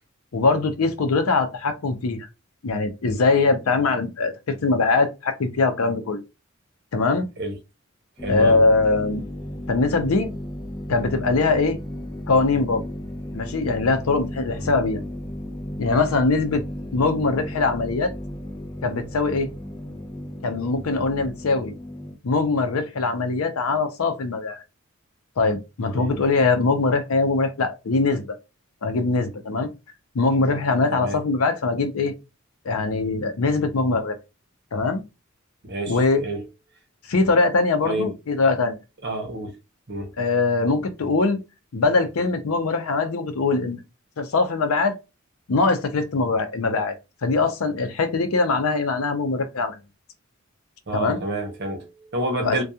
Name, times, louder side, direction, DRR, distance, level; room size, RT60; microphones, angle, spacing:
voice 1, 0.3-2.3 2.6-6.2 6.9-7.3 8.3-9.2 9.7-10.3 10.9-11.8 12.3-12.8 13.3-15.0 15.8-16.6 16.9-18.1 18.8-19.5 20.4-21.7 22.2-24.6 25.4-28.3 28.8-29.7 30.1-32.1 32.6-34.2 34.7-35.0 35.9-36.2 37.1-38.8 40.2-41.4 41.7-43.8 44.2-44.9 45.5-46.9 47.2-49.8 50.9-51.2 52.4-52.6, left 3 dB, 85° left, 0.6 m, -22 dB
sound 1, 8.2-22.2, left 1 dB, 20° left, 0.5 m, -35 dB
voice 2, 8.2-8.6 14.5-14.7 25.9-26.1 30.9-31.2 35.6-36.4 37.8-38.1 39.0-39.6 39.9-40.1 50.9-52.6, right 1 dB, 55° right, 0.8 m, -29 dB
2.3 x 2.3 x 2.7 m
head